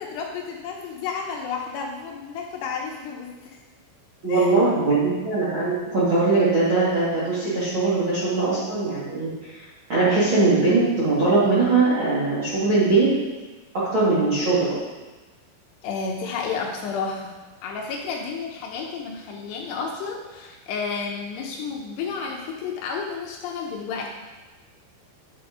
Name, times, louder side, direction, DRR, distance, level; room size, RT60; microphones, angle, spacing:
voice 1, 0.0-3.6 4.3-4.5 15.8-17.3 17.6-24.1, left 5 dB, 80° left, 0 dB, 2.5 m, -31 dB
voice 2, 4.2-13.1 13.7-14.8, right 3 dB, 70° right, -9 dB, 1.2 m, -21 dB
10.0 x 6.1 x 4.9 m, 1.2 s
omnidirectional pair, 5.8 m